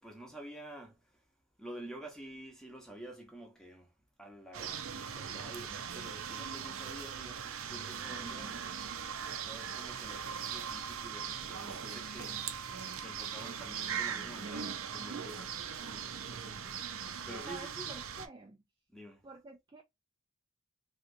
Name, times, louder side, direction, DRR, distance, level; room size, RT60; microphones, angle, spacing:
voice 1, 0.0-8.5 9.3-17.9 18.9-19.3, right 1 dB, 5° left, 0.8 m, -50 dB
sound 1, 4.5-18.3, right 7 dB, 75° right, 0.5 m, -40 dB
voice 2, 8.1-8.6 17.5-18.6 19.2-19.8, right 3 dB, 20° right, 0.3 m, -48 dB
3.1 x 2.8 x 2.5 m
head